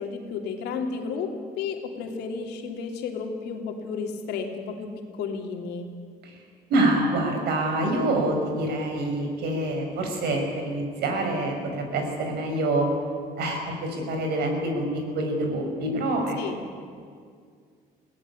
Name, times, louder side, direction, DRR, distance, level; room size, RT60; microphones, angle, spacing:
voice 1, 0.0-5.9 16.4-16.7, left 5 dB, 85° left, 3 dB, 3.0 m, -32 dB
voice 2, 6.7-12.9 13.4-16.4, right 1 dB, 75° right, 3 dB, 5.5 m, -26 dB
22.0 x 17.0 x 9.9 m, 2.1 s
cardioid pair, 110°, 17 cm